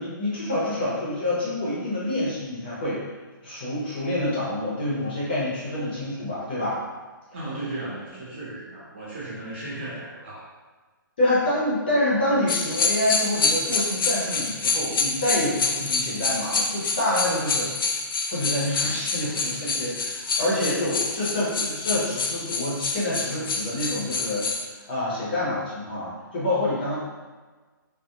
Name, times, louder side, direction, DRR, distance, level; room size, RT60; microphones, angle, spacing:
voice 1, 0.0-3.1 3.4-6.8 11.2-17.7 18.2-24.5 24.9-27.0, left 1 dB, 25° left, -7 dB, 0.6 m, -27 dB
voice 2, 7.3-10.4, right 2 dB, 30° right, -7 dB, 0.7 m, -35 dB
sound 1, 12.5-24.7, left 4 dB, 80° left, 0.4 m, -27 dB
3.3 x 2.1 x 2.8 m, 1.3 s
hypercardioid pair, 180°, 12 cm